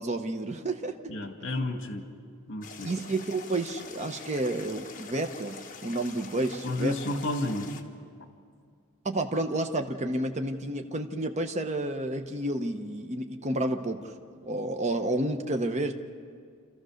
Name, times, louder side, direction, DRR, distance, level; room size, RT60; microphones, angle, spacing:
voice 1, 0.0-1.0 2.8-6.9 9.0-14.1 14.4-15.9, right 1 dB, 35° right, 5 dB, 0.9 m, -30 dB
voice 2, 1.1-2.1 2.5-2.9 6.6-7.8, left 1 dB, 60° left, 4 dB, 2.1 m, -31 dB
sound 1, 2.6-7.8, left 5 dB, 40° left, 1.3 m, -45 dB
28.5 x 14.0 x 6.4 m, 2.1 s
head